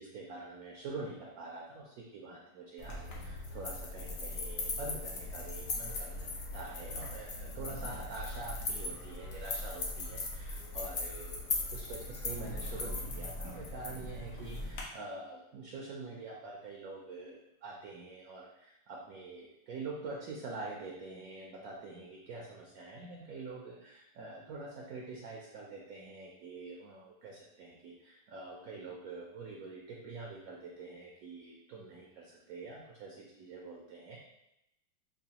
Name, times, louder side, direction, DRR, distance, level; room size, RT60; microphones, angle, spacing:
voice 1, 0.0-34.2, right 3 dB, 70° right, -1 dB, 0.9 m, -45 dB
sound 1, 2.8-14.8, left 2 dB, 60° left, 0.9 m, -39 dB
5.5 x 2.2 x 2.8 m, 0.87 s
omnidirectional pair, 2.0 m